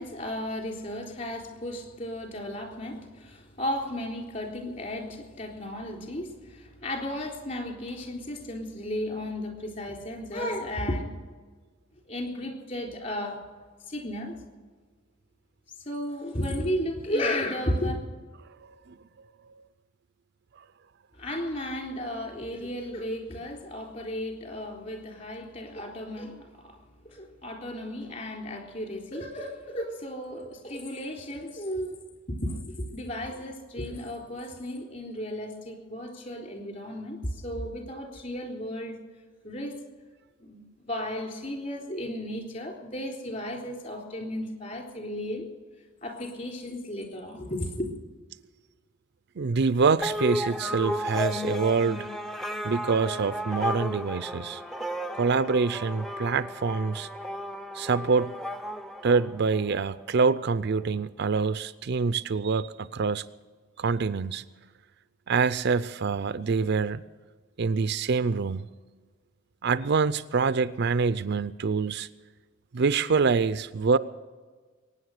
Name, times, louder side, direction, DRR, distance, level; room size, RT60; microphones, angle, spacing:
voice 1, 0.0-11.1 12.1-13.4 13.9-14.4 15.8-18.0 21.1-32.0 32.3-39.0 39.4-39.8 40.4-45.5 46.0-47.9, left 1 dB, 35° left, 2 dB, 3.8 m, -34 dB
voice 2, 49.4-52.1 52.6-54.6 55.1-57.1 57.7-58.3 59.0-63.2 63.8-64.4 65.3-67.0 67.6-68.7 69.6-72.1 72.7-74.0, right 5 dB, 55° right, 14 dB, 0.5 m, -25 dB
sound 1, 50.0-59.8, equal, ahead, 0.6 m, -34 dB
22.5 x 9.9 x 6.6 m, 1.4 s
head